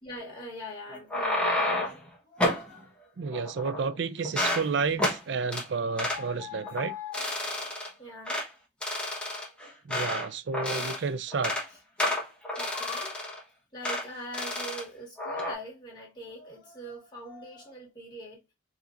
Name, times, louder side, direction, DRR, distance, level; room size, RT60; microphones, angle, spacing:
voice 1, 0.0-1.8 2.3-3.0 5.9-7.4 8.0-8.4 12.5-13.3 13.7-18.4, left 2 dB, 20° left, 1.9 m, -42 dB
sound 1, 0.9-2.0 2.4-2.7 3.3-3.9 4.2-4.7 5.0-5.2 5.5-5.7 6.0-6.2 6.7-6.8 7.1-7.9 8.3-8.5 8.8-10.3 10.5-11.0 11.3-11.7 12.0-13.4 13.8-14.0 14.3-14.8 15.2-15.5, left 1 dB, 5° left, 1.0 m, -30 dB
voice 2, 3.2-6.9 9.9-11.5, right 5 dB, 60° right, 0.4 m, -31 dB
4.8 x 2.8 x 2.5 m
head